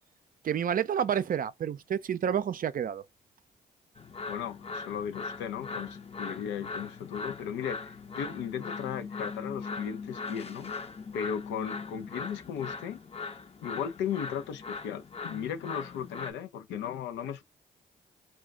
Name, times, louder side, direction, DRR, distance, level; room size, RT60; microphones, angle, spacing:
voice 1, 0.4-3.0, right 8 dB, 50° right, 0.5 m, -29 dB
sound 1, 4.0-16.3, left 4 dB, 35° left, 0.7 m, -40 dB
voice 2, 4.3-10.7 11.1-13.0 13.6-17.4, left 8 dB, 85° left, 0.5 m, -36 dB
2.3 x 2.2 x 3.4 m
supercardioid pair, 45°, 18 cm